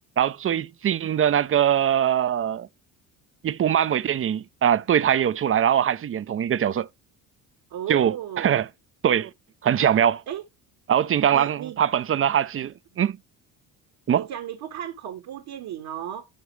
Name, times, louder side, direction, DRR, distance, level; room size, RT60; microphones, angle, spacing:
voice 1, 0.2-2.7 3.4-6.9 7.9-8.7 9.0-9.3 9.6-10.2 10.9-13.2 14.1-14.3, right 9 dB, 35° right, 0.6 m, -22 dB
voice 2, 7.7-8.6 10.3-10.4 11.3-11.8 14.1-16.3, right 10 dB, 65° right, 1.5 m, -34 dB
11.5 x 4.2 x 3.2 m
supercardioid pair, 75°, 40 cm